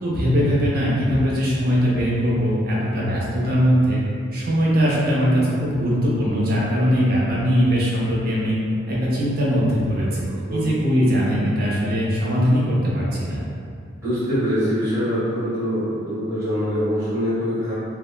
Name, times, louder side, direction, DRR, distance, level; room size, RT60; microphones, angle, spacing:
voice 1, 0.0-4.0 4.3-8.6 8.9-13.4, equal, 55° right, -6 dB, 0.7 m, -20 dB
voice 2, 10.3-10.6 14.0-17.7, equal, 15° right, -13 dB, 1.4 m, -24 dB
3.4 x 2.1 x 2.3 m, 2.4 s
head